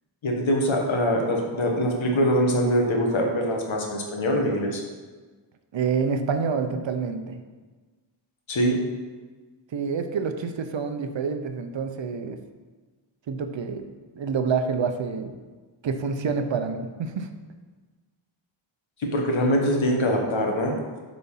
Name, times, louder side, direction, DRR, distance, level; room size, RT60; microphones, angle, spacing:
voice 1, 0.2-4.8 8.5-8.8 19.0-20.8, equal, 70° left, 1 dB, 1.5 m, -23 dB
voice 2, 5.7-7.4 9.7-12.4 13.3-13.9 14.1-15.3 15.8-17.3, right 5 dB, 65° right, 7 dB, 0.8 m, -27 dB
8.3 x 4.2 x 5.6 m, 1.3 s
wide cardioid pair, 175°, 48 cm